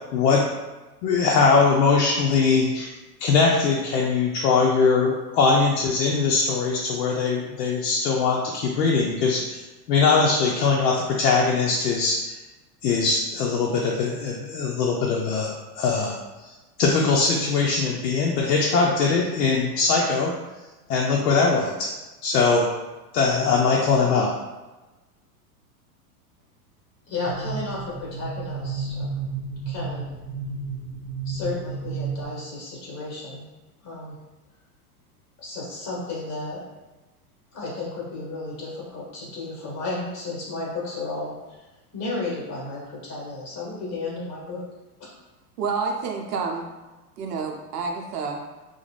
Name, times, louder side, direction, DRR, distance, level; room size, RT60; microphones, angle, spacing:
voice 1, 0.1-0.5 1.0-2.9 3.2-9.6 9.9-12.4 12.8-16.5 16.8-20.3 20.9-21.9 22.2-22.7 23.1-24.3, left 4 dB, 80° left, -2 dB, 0.6 m, -21 dB
voice 2, 27.1-29.2 29.6-30.1 31.2-33.4 33.8-34.2 35.4-36.6 37.5-41.6 41.9-44.6, left 3 dB, 35° left, -4 dB, 1.3 m, -33 dB
sound 1, 27.3-32.3, right 5 dB, 40° right, 0.8 m, -32 dB
voice 3, 45.6-46.7 47.2-48.4, right 4 dB, 80° right, 2 dB, 0.6 m, -28 dB
2.4 x 2.1 x 3.1 m, 1.2 s
hypercardioid pair, 110°, 47 cm